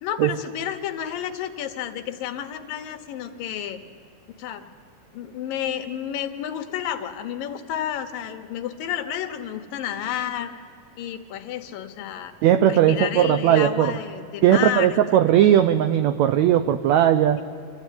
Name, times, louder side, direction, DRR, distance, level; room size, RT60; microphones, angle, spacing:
voice 1, 0.0-3.8 4.4-4.7 5.1-10.5 11.0-12.3 12.7-15.0 17.4-17.5, left 10 dB, 85° left, 8 dB, 2.8 m, -31 dB
voice 2, 12.4-13.9 14.4-17.4, right 11 dB, 85° right, 10 dB, 1.5 m, -18 dB
26.0 x 14.5 x 9.2 m, 2.5 s
omnidirectional pair, 3.9 m